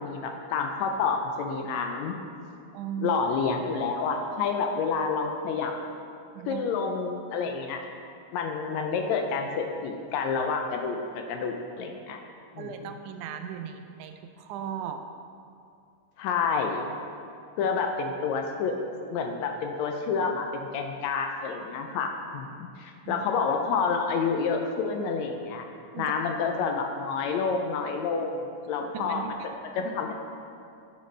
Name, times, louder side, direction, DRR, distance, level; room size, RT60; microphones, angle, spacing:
voice 1, 0.0-2.2 3.0-5.7 6.5-7.8 8.3-12.2 12.5-12.7 16.2-16.9 17.6-18.7 19.1-25.7 26.0-29.2 29.7-30.1, left 5 dB, 80° left, 3 dB, 1.8 m, -29 dB
voice 2, 2.7-3.1 6.4-6.6 12.6-15.1 23.1-23.2 25.9-26.1 28.9-29.3, right 9 dB, 85° right, 7 dB, 2.1 m, -37 dB
10.5 x 6.4 x 3.2 m, 2.5 s
omnidirectional pair, 3.4 m